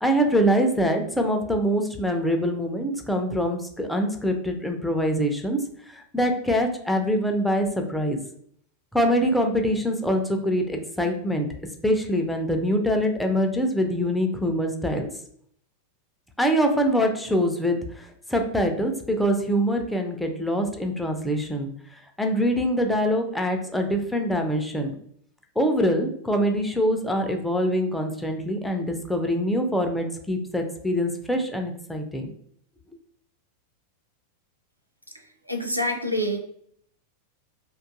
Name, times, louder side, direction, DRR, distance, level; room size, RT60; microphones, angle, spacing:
voice 1, 0.0-5.6 5.9-8.2 8.9-11.5 11.8-15.1 16.4-21.7 22.2-24.9 25.6-32.3, equal, 5° left, 3 dB, 0.3 m, -24 dB
voice 2, 35.5-36.4, equal, 85° right, 4 dB, 0.4 m, -26 dB
2.4 x 2.3 x 2.5 m, 0.64 s
figure-of-eight pair, 90°, 0 cm